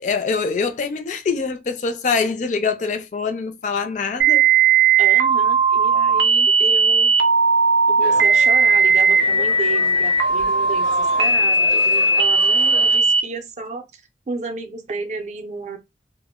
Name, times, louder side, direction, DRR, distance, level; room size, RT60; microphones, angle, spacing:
voice 1, 0.0-4.4, left 4 dB, 45° left, 0.4 m, -24 dB
sound 1, 4.2-13.2, right 4 dB, 90° right, 0.5 m, -17 dB
voice 2, 5.0-7.1 7.9-13.9 14.3-15.8, right 3 dB, 40° right, 0.5 m, -32 dB
sound 2, 8.0-13.0, left 3 dB, 90° left, 0.6 m, -35 dB
2.1 x 2.0 x 3.6 m
head